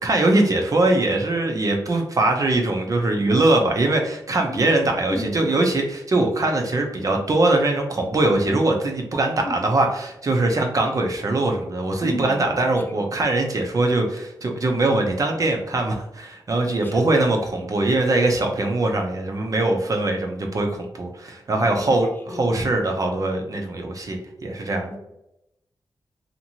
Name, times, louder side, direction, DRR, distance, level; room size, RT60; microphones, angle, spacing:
voice 1, 0.0-24.9, right 2 dB, 45° right, 3 dB, 0.5 m, -22 dB
voice 2, 4.5-4.8 5.1-5.6 9.4-9.6 10.3-10.4 12.0-13.2 16.8-17.3 21.6-22.5 24.9-25.0, left 1 dB, 25° left, 2 dB, 0.6 m, -35 dB
2.7 x 2.5 x 2.8 m, 0.84 s
wide cardioid pair, 90°, 8 cm